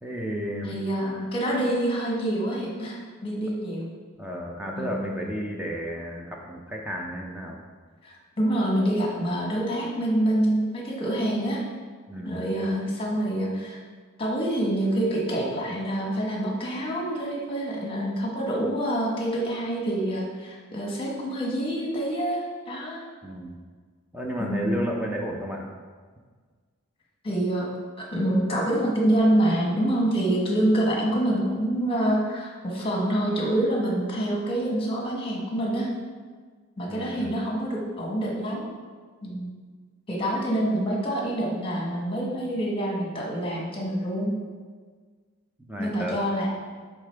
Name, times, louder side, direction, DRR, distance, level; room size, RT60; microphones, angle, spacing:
voice 1, 0.0-0.8 4.2-7.6 12.1-12.5 23.2-23.6 24.1-25.7 36.9-37.4 45.7-46.2, equal, 5° right, -1 dB, 0.5 m, -32 dB
voice 2, 0.6-3.9 4.8-4.9 8.0-11.6 12.2-13.8 14.2-23.0 24.4-24.8 27.2-27.7 28.0-35.9 36.8-38.7 39.2-39.5 40.1-44.3 45.8-46.5, right 1 dB, 25° left, -2 dB, 1.2 m, -26 dB
8.3 x 3.7 x 3.4 m, 1.5 s
head